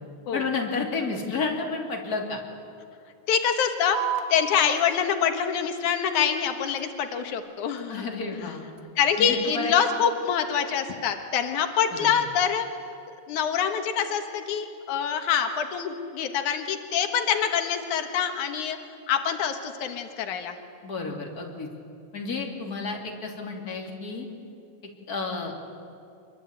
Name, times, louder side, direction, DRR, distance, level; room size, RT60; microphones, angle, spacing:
voice 1, 0.3-2.4 7.9-8.6 9.2-9.7 12.0-12.1 20.8-21.7 22.1-24.3 25.1-25.5, left 4 dB, 30° left, 1 dB, 3.4 m, -31 dB
voice 2, 3.3-4.0 4.3-8.1 8.4-8.5 9.0-12.7 13.3-18.8 19.1-20.6, left 8 dB, 85° left, 6 dB, 2.8 m, -25 dB
sound 1, 3.9-10.9, right 7 dB, 65° right, 2.5 m, -39 dB
25.5 x 23.0 x 8.9 m, 2.5 s
omnidirectional pair, 3.3 m